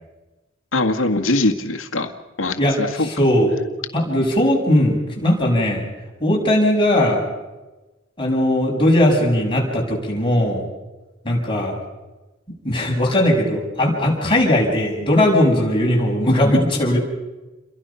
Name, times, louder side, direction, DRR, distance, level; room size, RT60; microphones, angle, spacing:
voice 1, 0.7-2.1 2.4-3.1, left 2 dB, 85° left, 4 dB, 1.9 m, -21 dB
voice 2, 2.6-3.5 3.9-5.8 6.2-7.2 8.2-10.6 11.2-11.7 12.6-17.0, left 1 dB, 25° left, -1 dB, 6.5 m, -18 dB
29.5 x 23.0 x 5.8 m, 1.1 s
head